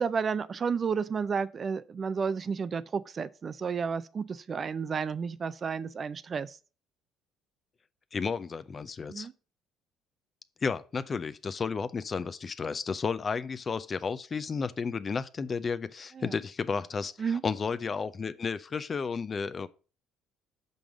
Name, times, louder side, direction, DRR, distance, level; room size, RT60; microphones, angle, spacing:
voice 1, 0.0-6.6 9.1-9.3 16.2-16.3 17.2-17.4, right 6 dB, 40° right, 0.4 m, -31 dB
voice 2, 8.1-9.3 10.6-19.7, left 5 dB, 35° left, 0.5 m, -32 dB
6.0 x 5.3 x 4.9 m
hypercardioid pair, 60°, 0 cm